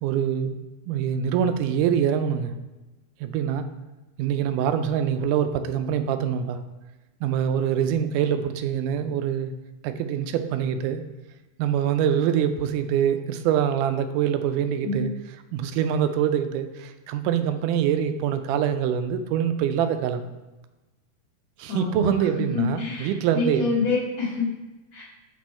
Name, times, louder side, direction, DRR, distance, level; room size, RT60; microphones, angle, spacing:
voice 1, 0.0-0.6 0.9-2.5 3.2-3.6 4.2-6.6 7.2-9.5 9.8-11.0 11.6-15.1 15.5-20.3 21.6-23.7, right 9 dB, 90° right, 9 dB, 2.1 m, -24 dB
voice 2, 21.7-22.1 22.4-24.5 24.9-25.0, left 4 dB, 65° left, -8 dB, 2.4 m, -27 dB
6.1 x 5.5 x 4.3 m, 1.1 s
omnidirectional pair, 3.6 m